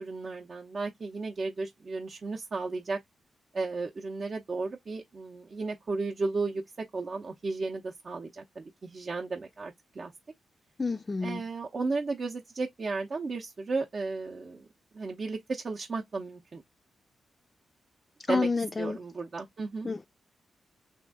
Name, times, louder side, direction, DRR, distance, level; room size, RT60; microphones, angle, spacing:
voice 1, 0.0-3.0 3.5-6.6 6.9-10.1 11.2-14.7 14.9-16.6 18.3-18.5 18.8-19.9, right 3 dB, 50° right, 0.6 m, -34 dB
voice 2, 10.8-11.4 18.3-19.0 19.8-20.1, left 4 dB, 30° left, 0.4 m, -29 dB
2.9 x 2.5 x 3.5 m
cardioid pair, 70°, 0 cm